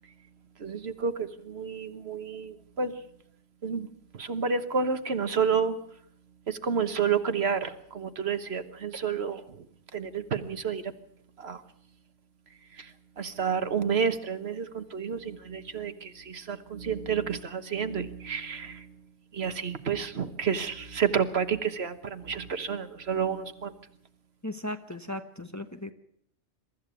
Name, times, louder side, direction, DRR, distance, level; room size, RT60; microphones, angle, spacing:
voice 1, 0.6-2.9 3.6-3.9 4.1-5.7 6.5-9.7 9.9-10.9 11.4-11.6 12.7-18.9 19.3-23.7, right 6 dB, 65° right, 10 dB, 1.5 m, -30 dB
voice 2, 24.4-25.9, left 1 dB, 15° left, 7 dB, 1.0 m, -36 dB
23.5 x 14.0 x 8.3 m, 0.65 s
omnidirectional pair, 1.2 m